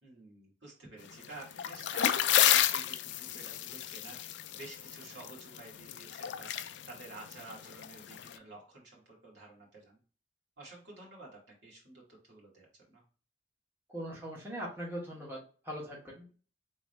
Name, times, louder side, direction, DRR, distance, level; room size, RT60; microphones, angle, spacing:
voice 1, 0.0-4.2 4.5-10.0 10.6-13.0, right 2 dB, 70° right, -4 dB, 2.1 m, -51 dB
sound 1, 1.2-8.4, left 11 dB, 70° left, 0.3 m, -31 dB
voice 2, 13.9-15.4 15.6-16.3, equal, 10° right, -5 dB, 1.3 m, -40 dB
3.7 x 3.1 x 3.1 m, 0.38 s
head